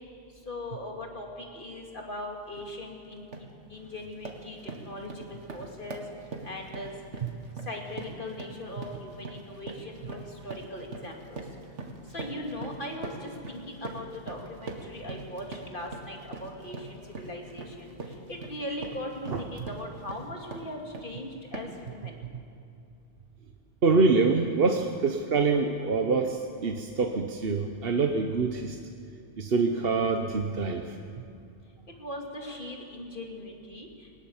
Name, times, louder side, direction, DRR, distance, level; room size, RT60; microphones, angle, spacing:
voice 1, 0.5-3.3 3.7-6.0 6.4-6.9 7.6-11.4 12.1-17.9 18.3-22.2 32.0-34.1, left 1 dB, 45° left, 1 dB, 2.8 m, -39 dB
sound 1, 2.5-2.7 3.1-3.5 3.9-21.2 21.5-21.9, right 3 dB, 80° right, 2.2 m, -42 dB
voice 2, 23.8-28.8 29.4-31.0, right 4 dB, 55° right, 4 dB, 1.2 m, -25 dB
20.0 x 19.5 x 7.3 m, 2.4 s
omnidirectional pair, 1.2 m